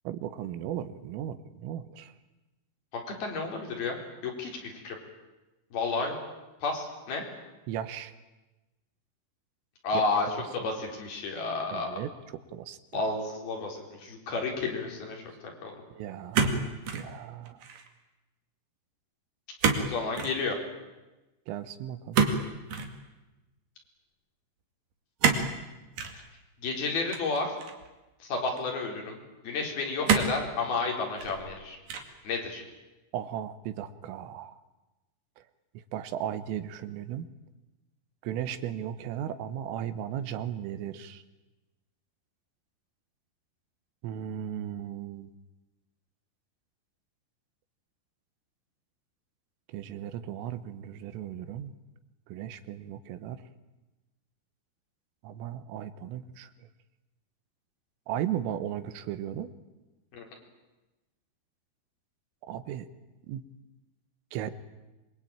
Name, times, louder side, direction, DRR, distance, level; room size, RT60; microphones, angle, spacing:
voice 1, 0.1-2.1 7.7-8.1 10.3-10.4 11.7-12.1 12.5-13.0 15.9-17.6 21.5-22.2 33.1-34.6 35.9-37.3 38.2-41.2 44.0-45.3 49.7-51.7 52.3-53.4 55.2-56.5 58.1-59.5 62.4-62.9 63.3-63.4 64.3-64.5, right 10 dB, 90° right, 12 dB, 3.9 m, -36 dB
voice 2, 2.9-4.0 4.2-5.0 5.7-6.2 6.6-7.2 9.8-10.3 10.5-12.0 12.9-15.8 19.8-20.6 26.1-26.2 26.6-27.5 28.2-29.2 29.4-31.8 32.2-32.6 60.1-60.3, left 3 dB, 50° left, 1 dB, 5.8 m, -31 dB
sound 1, 16.3-17.1 17.5-17.9 19.6-19.9 20.1-20.4 22.1-22.9 25.2-25.5 26.0-26.2 27.1-27.9 28.6-28.7 30.1-30.4 31.0-31.5 31.9-32.2, right 5 dB, 50° right, 3.4 m, -27 dB
26.0 x 23.5 x 9.0 m, 1.1 s
omnidirectional pair, 5.7 m